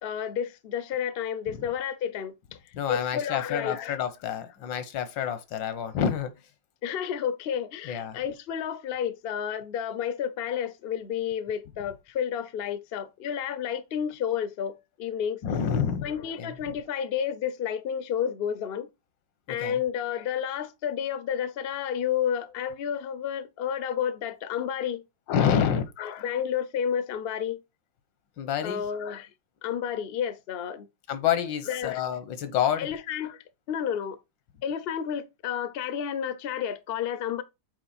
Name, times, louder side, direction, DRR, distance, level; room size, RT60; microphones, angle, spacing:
voice 1, 0.0-2.3 2.9-4.0 6.8-15.4 16.0-18.9 19.5-25.0 26.0-27.6 28.6-29.3 29.6-30.9 31.7-32.0 32.8-34.2 34.6-37.4, left 8 dB, 70° left, 0.5 m, -31 dB
voice 2, 2.7-6.3 7.8-8.2 15.4-16.1 16.4-16.5 19.5-19.8 25.3-25.9 28.4-28.9 31.1-32.9, left 8 dB, 85° left, 1.7 m, -28 dB
8.4 x 3.2 x 4.2 m
omnidirectional pair, 2.0 m